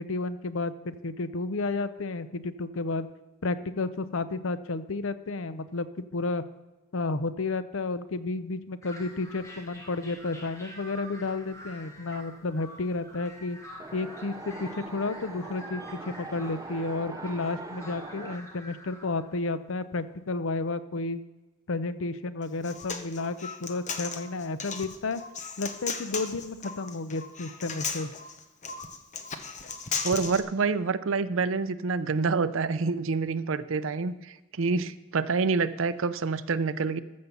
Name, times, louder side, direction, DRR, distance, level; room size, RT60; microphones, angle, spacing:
voice 1, 0.0-3.1 3.4-5.9 6.1-6.4 6.9-13.6 13.9-21.2 21.7-25.2 25.6-28.1, left 3 dB, 70° left, 13 dB, 0.6 m, -32 dB
sound 1, 8.8-19.6, equal, 15° left, 1.4 m, -47 dB
Wind, 13.8-18.4, right 3 dB, 15° right, 0.5 m, -42 dB
Human voice, 22.4-30.4, left 5 dB, 35° left, 1.0 m, -36 dB
voice 2, 30.0-37.0, right 4 dB, 70° right, 13 dB, 0.6 m, -27 dB
14.0 x 5.2 x 7.0 m, 1.1 s
head